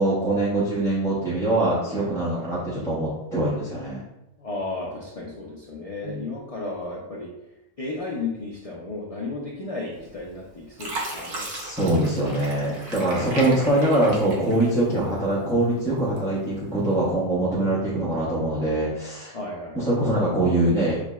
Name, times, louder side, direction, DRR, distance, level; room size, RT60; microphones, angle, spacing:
voice 1, 0.0-4.0 6.0-6.2 11.5-19.3 19.7-21.0, right 1 dB, 5° left, -10 dB, 0.6 m, -23 dB
voice 2, 1.9-2.5 4.4-7.3 7.8-11.6 19.3-19.8, left 3 dB, 65° left, -3 dB, 0.3 m, -34 dB
Fill (with liquid), 10.0-10.4 10.8-15.2 15.6-16.4 17.0-17.1, right 2 dB, 70° right, 1.1 m, -36 dB
6.1 x 2.0 x 2.3 m, 0.90 s
omnidirectional pair, 1.3 m